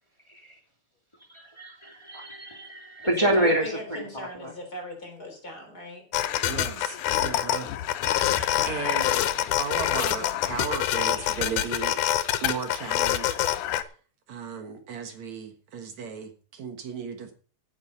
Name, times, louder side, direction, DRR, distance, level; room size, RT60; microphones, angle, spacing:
voice 1, 1.3-4.5, right 1 dB, 10° left, 0 dB, 2.7 m, -27 dB
voice 2, 3.2-6.0, left 1 dB, 30° left, 3 dB, 3.7 m, -38 dB
sound 1, 6.1-13.8, left 12 dB, 80° left, 2.3 m, -26 dB
voice 3, 6.4-7.7 8.3-9.3 9.6-12.0 12.4-13.4 14.3-17.3, right 6 dB, 65° right, 6 dB, 2.7 m, -35 dB
16.0 x 9.4 x 4.1 m, 0.39 s
omnidirectional pair, 3.5 m